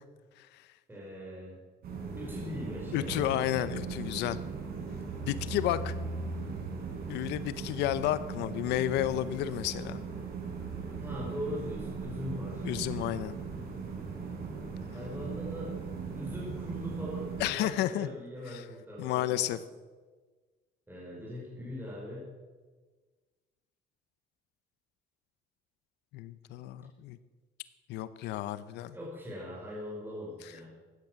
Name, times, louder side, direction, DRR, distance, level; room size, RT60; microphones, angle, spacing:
voice 1, 0.4-0.7 2.9-4.4 5.2-5.9 7.1-10.0 12.6-13.4 17.4-18.1 18.5-18.6 19.0-19.6 26.1-27.2 27.9-28.9, left 13 dB, 85° left, 14 dB, 0.7 m, -31 dB
voice 2, 0.9-1.6 2.2-3.3 11.0-12.7 14.9-15.8 16.2-19.6 20.9-22.3 28.9-30.7, left 1 dB, 10° right, -5 dB, 5.2 m, -41 dB
sound 1, 1.8-17.5, right 5 dB, 65° right, 4.4 m, -38 dB
14.5 x 10.5 x 7.5 m, 1.4 s
cardioid pair, 110°, 17 cm